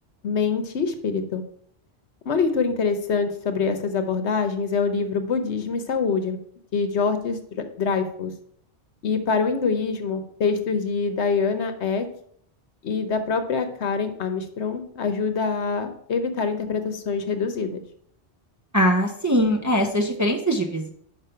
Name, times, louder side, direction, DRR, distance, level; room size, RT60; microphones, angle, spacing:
voice 1, 0.2-1.4 2.2-6.4 6.7-8.3 9.0-12.1 12.8-17.8, left 5 dB, 80° left, 8 dB, 1.1 m, -25 dB
voice 2, 18.7-20.9, equal, 20° right, 1 dB, 0.5 m, -21 dB
5.5 x 5.4 x 5.6 m, 0.65 s
omnidirectional pair, 1.1 m